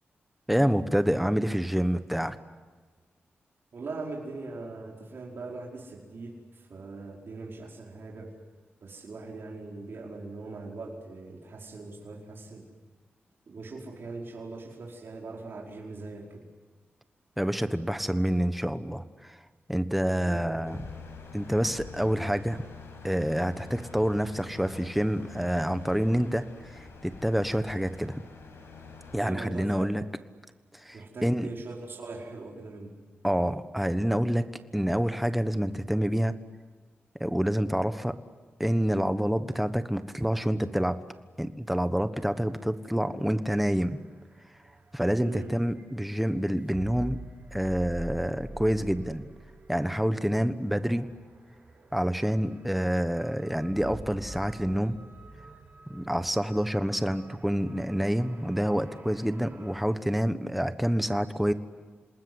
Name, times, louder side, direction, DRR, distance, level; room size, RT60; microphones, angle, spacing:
voice 1, 0.5-2.4 17.4-19.4 19.7-20.8 21.3-22.6 23.0-28.2 29.1-30.0 30.7-31.5 33.2-34.5 34.7-36.3 37.2-38.2 38.6-41.0 41.4-44.0 44.9-47.2 47.5-49.2 49.7-51.1 51.9-55.0 55.9-61.5, equal, 5° right, 11 dB, 1.3 m, -27 dB
voice 2, 3.7-8.3 8.8-12.7 13.5-16.4 20.2-20.8 29.2-30.0 30.9-32.9 45.2-45.6, right 3 dB, 60° right, -2 dB, 5.0 m, -41 dB
sound 1, 20.6-29.2, left 4 dB, 85° left, 5.5 m, -46 dB
sound 2, 42.5-59.8, right 2 dB, 40° right, 7.3 m, -46 dB
27.5 x 20.0 x 9.7 m, 1.4 s
wide cardioid pair, 95°, 4 cm